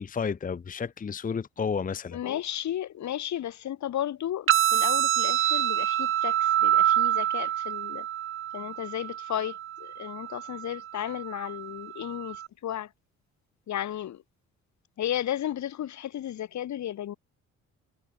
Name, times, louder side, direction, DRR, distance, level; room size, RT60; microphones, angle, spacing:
voice 1, 0.0-2.2, left 6 dB, 25° left, 0.8 m, -31 dB
voice 2, 2.1-8.1 8.5-12.9 13.7-14.2 15.0-17.1, left 11 dB, 65° left, 2.5 m, -34 dB
sound 1, 4.5-12.5, right 11 dB, 45° right, 0.5 m, -27 dB
cardioid pair, 90°, 30 cm